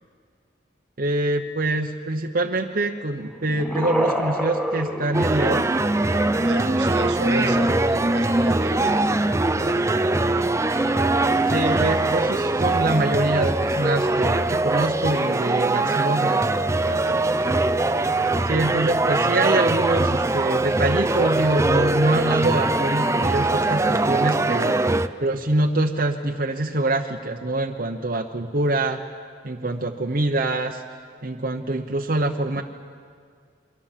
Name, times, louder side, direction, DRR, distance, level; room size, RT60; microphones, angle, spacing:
voice 1, 1.0-5.7 11.5-16.4 18.5-24.8 25.2-29.0 29.4-30.8 31.2-32.6, right 2 dB, 50° right, 2 dB, 1.0 m, -24 dB
sound 1, 3.2-5.9 7.4-9.1 10.5-11.0, equal, 5° left, 1.9 m, -30 dB
sound 2, 5.1-25.1, right 2 dB, 15° right, 0.6 m, -22 dB
voice 2, 6.4-10.5 16.8-17.7, right 2 dB, 65° right, 8 dB, 1.4 m, -34 dB
28.0 x 24.0 x 7.5 m, 2.1 s
head